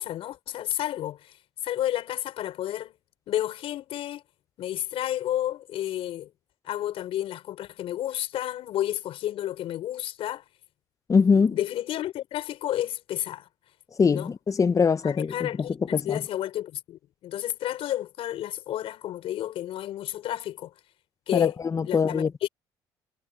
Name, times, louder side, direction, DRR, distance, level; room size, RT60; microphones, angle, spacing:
voice 1, 0.0-1.3 1.6-2.9 3.3-4.2 4.6-6.3 6.6-10.4 11.3-13.5 14.1-14.3 15.0-20.7 21.3-21.5 21.8-22.5, left 12 dB, 70° left, 5.5 m, -31 dB
voice 2, 11.1-11.6 14.0-15.5 15.9-16.2 21.3-22.3, left 5 dB, 35° left, 0.8 m, -22 dB
supercardioid pair, 70°, 10 cm